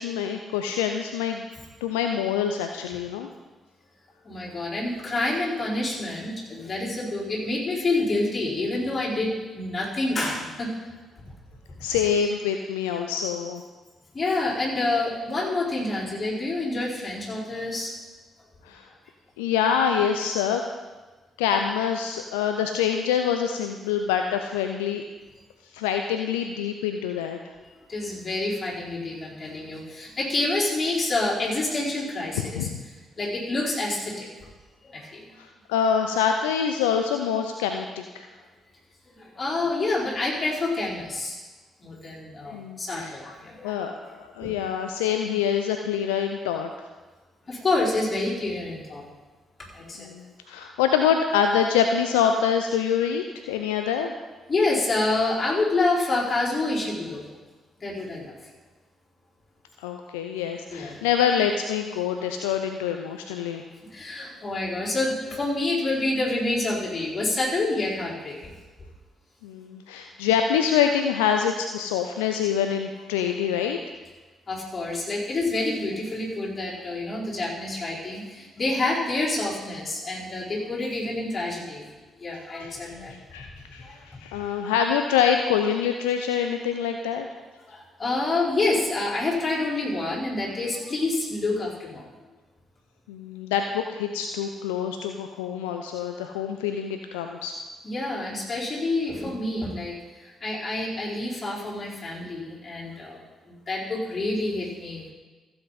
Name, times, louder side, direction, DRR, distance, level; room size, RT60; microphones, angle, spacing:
voice 1, 0.0-1.4 1.8-3.3 11.8-13.6 18.7-18.9 19.4-20.6 21.4-25.0 25.7-27.4 32.5-32.8 35.4-38.3 42.5-43.2 43.6-43.9 44.2-46.7 50.0-54.1 59.8-63.6 69.4-73.8 82.6-87.3 93.1-97.5, left 8 dB, 80° left, 5 dB, 0.5 m, -25 dB
voice 2, 4.2-10.7 14.1-17.9 27.6-32.7 33.2-34.3 34.8-35.2 39.1-41.4 41.8-43.7 44.4-44.5 47.5-49.0 49.7-50.1 54.5-57.2 57.8-58.3 60.7-61.0 63.9-68.5 74.5-81.9 82.2-83.1 83.8-84.0 87.7-92.0 97.8-103.2 103.4-105.1, left 2 dB, 35° left, -6 dB, 4.4 m, -28 dB
15.0 x 7.9 x 4.1 m, 1.3 s
hypercardioid pair, 40°, 0 cm